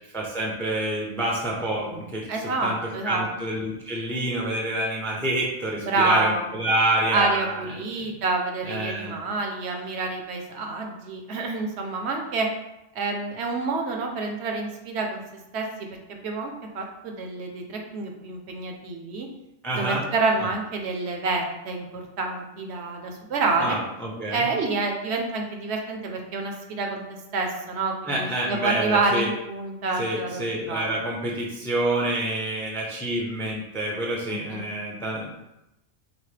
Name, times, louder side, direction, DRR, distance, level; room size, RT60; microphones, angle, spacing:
voice 1, 0.1-2.3 2.6-8.1 8.6-9.2 19.6-20.0 23.6-24.5 28.0-29.3 30.0-35.3, right 1 dB, 5° left, -2 dB, 0.5 m, -27 dB
voice 2, 2.3-3.3 5.8-6.5 7.1-12.5 12.9-15.2 15.5-15.7 16.1-19.3 19.7-23.8 24.3-30.9 34.3-34.6, right 3 dB, 65° right, 2 dB, 0.9 m, -28 dB
6.2 x 2.1 x 3.3 m, 0.91 s
omnidirectional pair, 1.3 m